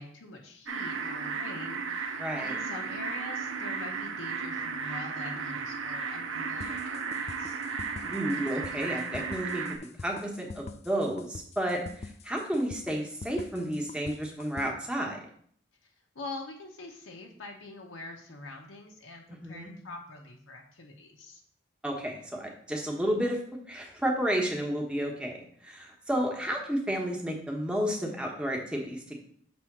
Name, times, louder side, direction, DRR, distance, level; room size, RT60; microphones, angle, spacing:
voice 1, 0.0-1.8 2.4-7.6 16.1-21.4, left 2 dB, 80° left, 0 dB, 0.9 m, -44 dB
sound 1, 0.7-9.8, right 5 dB, 80° right, 0.7 m, -35 dB
voice 2, 2.2-2.6 8.0-9.6 10.0-15.2 19.4-19.7 21.8-23.4 23.7-25.4 25.6-29.2, equal, 5° right, 0 dB, 1.0 m, -31 dB
sound 2, 6.6-14.7, left 3 dB, 30° left, 0.3 m, -43 dB
6.2 x 3.4 x 6.0 m, 0.62 s
head